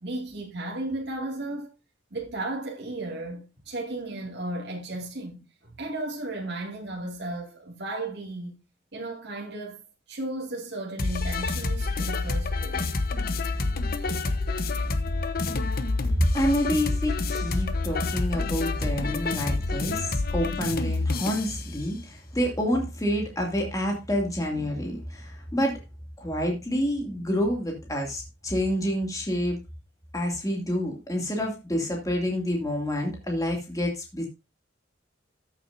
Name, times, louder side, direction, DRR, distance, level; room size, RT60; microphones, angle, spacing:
voice 1, 0.0-1.7 2.1-8.6 8.9-12.9, right 2 dB, 65° right, 2.4 m, -35 dB
sound 1, 11.0-21.6, left 3 dB, 50° left, 0.9 m, -28 dB
voice 2, 16.3-25.8 26.2-29.6 30.1-34.3, equal, 20° left, 2.5 m, -28 dB
13.5 x 7.4 x 2.7 m
head